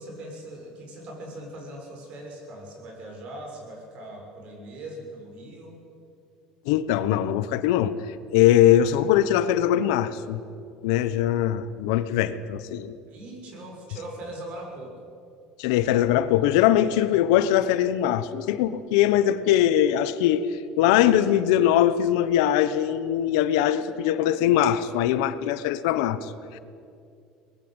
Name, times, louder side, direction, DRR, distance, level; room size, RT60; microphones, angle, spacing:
voice 1, 0.0-5.8 13.1-14.9, right 1 dB, 50° right, 1 dB, 6.8 m, -40 dB
voice 2, 6.7-7.9 8.3-10.4 10.8-12.9 15.6-20.5 20.8-26.6, left 11 dB, 85° left, 13 dB, 1.1 m, -21 dB
22.5 x 20.5 x 8.2 m, 2.4 s
cardioid pair, 140°, 3 cm